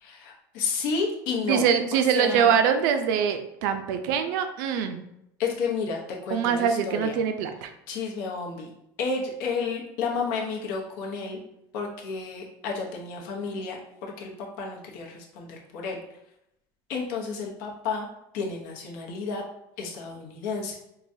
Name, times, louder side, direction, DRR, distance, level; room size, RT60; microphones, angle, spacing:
voice 1, 0.0-1.6 1.9-2.6 5.4-7.2 7.9-8.7 9.0-11.4 11.7-14.3 14.6-16.0 16.9-18.1 18.3-19.4 19.8-20.7, left 4 dB, 75° left, -1 dB, 0.8 m, -31 dB
voice 2, 1.5-5.0 6.3-7.7, right 7 dB, 85° right, 8 dB, 0.4 m, -24 dB
4.7 x 2.2 x 2.6 m, 0.81 s
cardioid pair, 170°, 10 cm